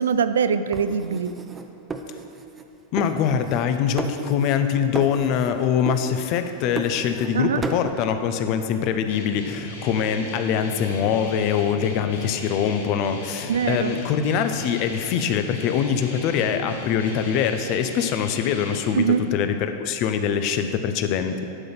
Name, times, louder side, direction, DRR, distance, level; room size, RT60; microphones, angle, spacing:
voice 1, 0.0-1.3 7.3-7.6 13.5-14.0 18.9-19.2, right 6 dB, 75° right, 12 dB, 0.3 m, -22 dB
sound 1, 0.7-2.7 3.0-3.7 4.0-4.7 4.9-5.6 5.9-7.3 7.6-7.9, right 4 dB, 20° right, 0.6 m, -34 dB
voice 2, 2.9-19.0 19.3-21.5, left 8 dB, 50° left, 8 dB, 0.6 m, -23 dB
sound 2, 9.1-18.9, left 1 dB, 80° left, 1.6 m, -37 dB
11.0 x 3.9 x 5.9 m, 2.7 s
hypercardioid pair, 95°, 0 cm